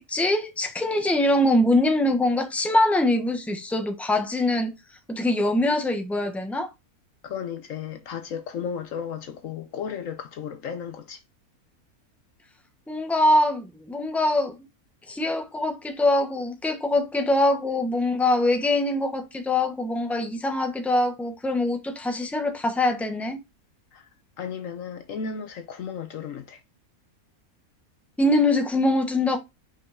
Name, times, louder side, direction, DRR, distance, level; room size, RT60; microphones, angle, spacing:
voice 1, 0.0-4.7 5.1-6.7 12.9-14.7 15.1-23.4 28.2-29.4, left 1 dB, ahead, 1.1 m, -23 dB
voice 2, 7.2-11.2 23.9-24.1 24.4-26.6, left 7 dB, 65° left, 1.1 m, -34 dB
5.5 x 5.2 x 3.5 m
omnidirectional pair, 1.6 m